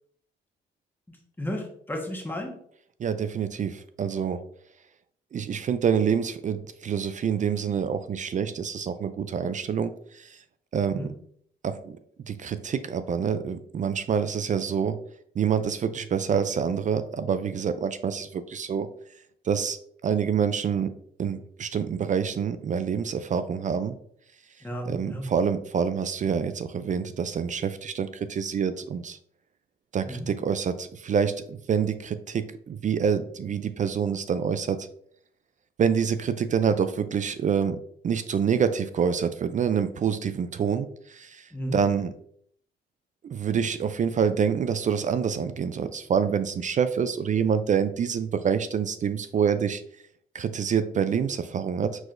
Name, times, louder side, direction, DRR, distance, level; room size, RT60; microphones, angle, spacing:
voice 1, 1.1-2.6 10.9-11.1 24.6-25.3 30.0-30.3 41.5-41.8, equal, 10° left, 0 dB, 1.3 m, -33 dB
voice 2, 3.0-4.4 5.3-10.3 10.7-11.1 11.6-12.0 12.3-15.0 15.4-18.9 19.5-19.8 20.0-20.9 21.2-24.0 24.9-29.2 29.9-34.8 35.8-37.8 38.0-41.4 41.7-42.1 43.2-49.8 50.3-52.1, right 7 dB, 40° right, 11 dB, 0.4 m, -26 dB
4.8 x 3.9 x 2.5 m, 0.64 s
cardioid pair, 90°, 20 cm